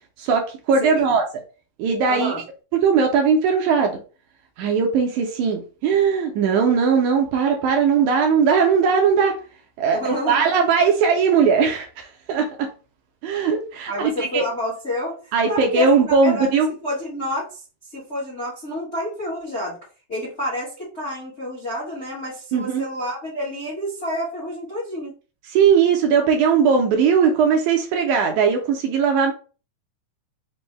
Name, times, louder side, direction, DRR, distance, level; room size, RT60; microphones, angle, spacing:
voice 1, 0.2-1.2 1.8-2.3 2.7-4.0 4.6-9.4 9.8-12.7 13.2-14.5 15.3-16.7 22.5-22.8 25.5-29.3, right 6 dB, 80° right, 3 dB, 1.8 m, -19 dB
voice 2, 0.8-1.1 2.1-2.4 9.9-10.4 13.9-19.8 20.1-25.1, left 1 dB, 75° left, -6 dB, 0.6 m, -29 dB
5.2 x 2.1 x 3.2 m, 0.36 s
omnidirectional pair, 3.8 m